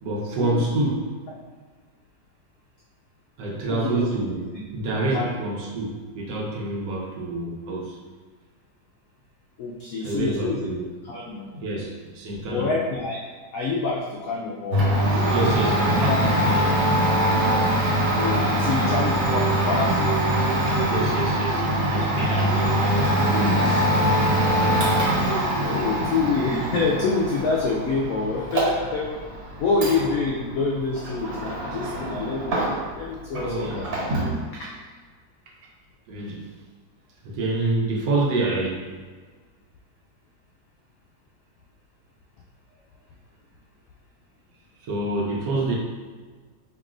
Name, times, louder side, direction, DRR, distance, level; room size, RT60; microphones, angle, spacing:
voice 1, 0.0-1.0 3.4-8.0 10.0-10.8 11.5-12.7 15.3-16.8 20.9-23.9 33.3-33.8 36.1-36.5 37.2-38.9 44.8-45.8, right 2 dB, 75° right, -2 dB, 1.4 m, -27 dB
voice 2, 3.7-4.1 5.1-5.4 9.6-10.6 11.1-11.5 12.4-13.2 13.5-16.2 18.1-20.4 25.5-29.2 29.6-33.8 34.5-34.7, left 4 dB, 75° left, -3 dB, 0.8 m, -27 dB
Domestic sounds home sounds, 14.7-33.0 33.3-34.4, right 1 dB, 90° right, 1.8 m, -23 dB
4.6 x 2.9 x 2.4 m, 1.5 s
omnidirectional pair, 2.0 m